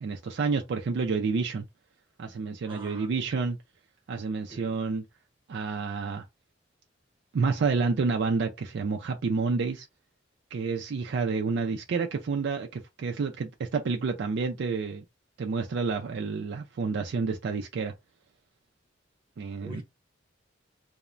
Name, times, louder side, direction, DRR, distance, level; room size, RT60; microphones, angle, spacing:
voice 1, 0.0-1.6 2.2-3.6 4.1-5.0 5.5-6.2 7.3-9.9 10.5-15.0 15.4-17.9 19.4-19.8, right 4 dB, 65° right, 0.4 m, -29 dB
voice 2, 2.6-3.3 4.5-4.8 19.6-19.8, right 1 dB, 25° right, 0.9 m, -44 dB
3.0 x 2.1 x 2.4 m
head